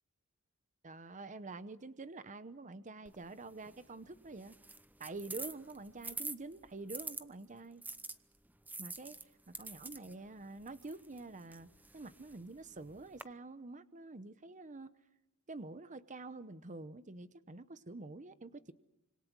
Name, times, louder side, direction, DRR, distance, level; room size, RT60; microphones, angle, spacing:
voice 1, 0.8-4.6 5.0-7.8 8.8-11.7 11.9-14.9 15.5-18.7, right 3 dB, 35° right, 13 dB, 0.9 m, -47 dB
sound 1, 3.1-7.2 7.8-13.2, right 3 dB, 10° right, 0.8 m, -48 dB
26.5 x 25.5 x 6.2 m, 0.99 s
head